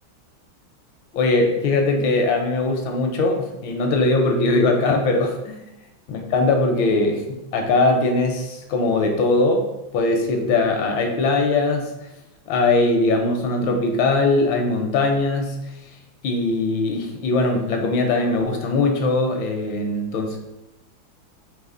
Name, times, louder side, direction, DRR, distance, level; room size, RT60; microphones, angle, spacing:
voice 1, 1.1-5.7 6.1-11.9 12.5-15.7 16.2-20.4, left 2 dB, 80° left, 3 dB, 1.3 m, -21 dB
4.0 x 2.9 x 3.7 m, 0.93 s
omnidirectional pair, 2.2 m